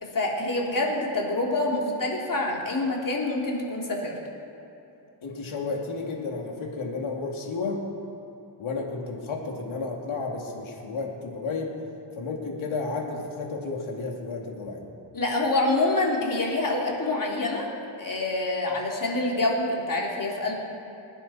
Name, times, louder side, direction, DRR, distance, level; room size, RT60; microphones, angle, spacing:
voice 1, 0.0-4.2 15.1-17.7 18.0-20.6, left 2 dB, 45° left, -2 dB, 3.2 m, -26 dB
voice 2, 5.2-7.8 8.6-11.7 12.1-14.9, left 3 dB, 80° left, 0 dB, 2.6 m, -32 dB
25.5 x 9.8 x 4.3 m, 2.9 s
cardioid pair, 85°, 47 cm